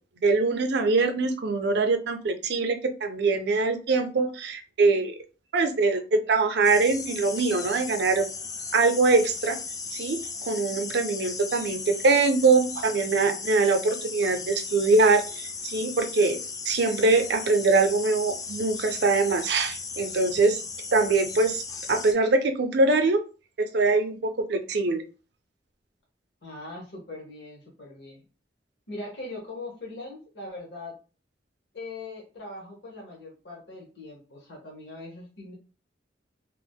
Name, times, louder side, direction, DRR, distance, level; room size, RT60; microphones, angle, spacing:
voice 1, 0.2-5.2 5.5-8.2 8.7-9.6 9.9-10.2 10.4-16.4 16.7-20.6 20.9-21.6 21.9-23.2 23.6-25.0, right 3 dB, 65° right, 7 dB, 0.5 m, -23 dB
sound 1, 6.6-22.1, left 4 dB, 20° left, 0.3 m, -36 dB
voice 2, 26.4-28.2 28.9-31.0 31.7-35.5, left 2 dB, 75° left, -2 dB, 1.0 m, -41 dB
2.9 x 2.0 x 3.4 m, 0.34 s
head